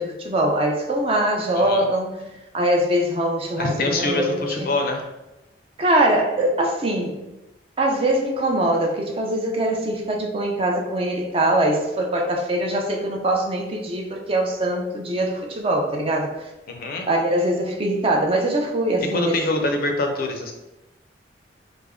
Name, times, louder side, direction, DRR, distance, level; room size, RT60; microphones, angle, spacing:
voice 1, 0.0-2.1 2.5-4.4 5.8-7.2 7.8-16.3 17.1-19.4, right 1 dB, 30° right, 1 dB, 0.4 m, -22 dB
voice 2, 1.5-1.9 3.6-5.1 16.7-17.1 19.1-20.5, left 2 dB, 55° left, 4 dB, 0.4 m, -24 dB
3.4 x 2.0 x 3.5 m, 0.99 s
head